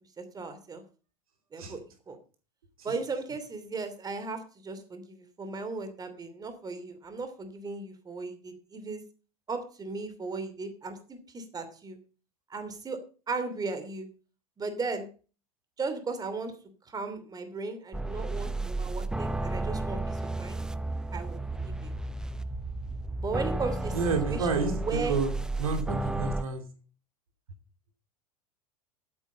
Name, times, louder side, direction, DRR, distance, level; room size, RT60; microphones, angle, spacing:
voice 1, 0.2-0.8 1.5-1.8 2.1-2.2 2.8-9.0 9.5-12.0 12.5-13.0 13.3-14.1 14.6-15.1 15.8-16.5 16.8-20.6 21.1-21.9 23.2-24.0 24.2-25.2, right 3 dB, 20° right, 9 dB, 2.8 m, -36 dB
sound 1, 17.9-26.4, right 2 dB, 5° right, 0.7 m, -33 dB
voice 2, 23.9-25.3 25.6-26.6, right 4 dB, 70° right, 6 dB, 2.9 m, -29 dB
13.0 x 9.1 x 5.5 m, 0.37 s
figure-of-eight pair, 80°, 19 cm